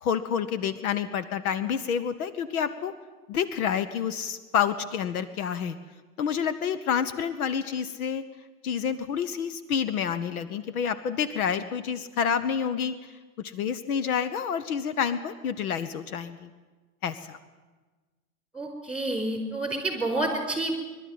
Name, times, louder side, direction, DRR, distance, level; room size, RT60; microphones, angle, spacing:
voice 1, 0.0-2.9 3.3-5.8 6.2-8.2 8.6-12.9 13.4-16.5 17.0-17.4, left 7 dB, 70° left, 14 dB, 1.2 m, -28 dB
voice 2, 18.5-20.7, right 2 dB, 5° right, 5 dB, 5.0 m, -29 dB
23.5 x 12.0 x 9.5 m, 1.3 s
hypercardioid pair, 105°, 45 cm